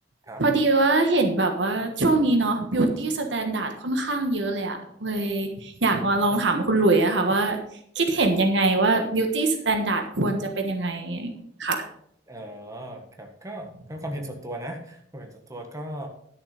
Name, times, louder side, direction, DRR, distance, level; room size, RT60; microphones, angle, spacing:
voice 1, 0.4-7.6 7.9-11.3 11.6-11.9, right 2 dB, 70° right, 5 dB, 1.4 m, -23 dB
voice 2, 12.3-16.1, right 1 dB, 15° right, 3 dB, 1.4 m, -37 dB
11.5 x 6.7 x 5.1 m, 0.69 s
head